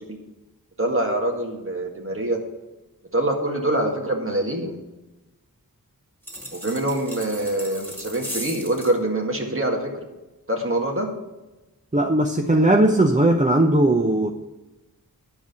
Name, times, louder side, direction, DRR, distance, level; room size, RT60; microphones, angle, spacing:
voice 1, 0.8-2.4 3.1-4.8 6.5-10.1 10.5-11.1, right 1 dB, 35° right, 1 dB, 2.0 m, -25 dB
sound 1, 6.2-9.0, equal, 5° left, 2.3 m, -36 dB
voice 2, 11.9-14.3, right 1 dB, 20° right, 3 dB, 0.7 m, -18 dB
11.0 x 5.1 x 8.2 m, 1.1 s
wide cardioid pair, 55°, 36 cm